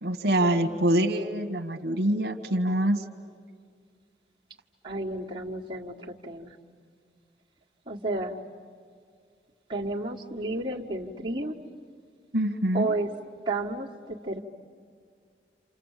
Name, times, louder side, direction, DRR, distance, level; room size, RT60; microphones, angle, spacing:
voice 1, 0.0-3.0 12.3-12.9, right 1 dB, 70° right, 4 dB, 1.3 m, -25 dB
voice 2, 0.5-1.2 4.8-6.6 7.9-8.4 9.7-11.6 12.7-13.1 13.4-14.4, right 2 dB, 25° right, -4 dB, 1.7 m, -32 dB
28.5 x 28.0 x 7.4 m, 2.1 s
head